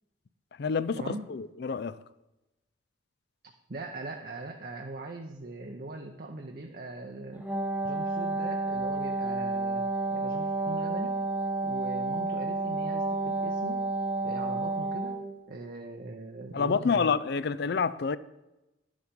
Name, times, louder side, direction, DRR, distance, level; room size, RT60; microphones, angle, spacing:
voice 1, 0.6-2.0 16.5-18.2, left 5 dB, 55° left, 0.4 m, -28 dB
voice 2, 3.7-7.5 7.8-9.8 10.1-11.2 11.6-13.8 14.2-15.2 15.5-17.1, right 2 dB, 50° right, 0.8 m, -40 dB
Wind instrument woodwind instrument, 7.3-15.3, right 2 dB, 10° right, 1.0 m, -30 dB
11.0 x 7.3 x 5.2 m
head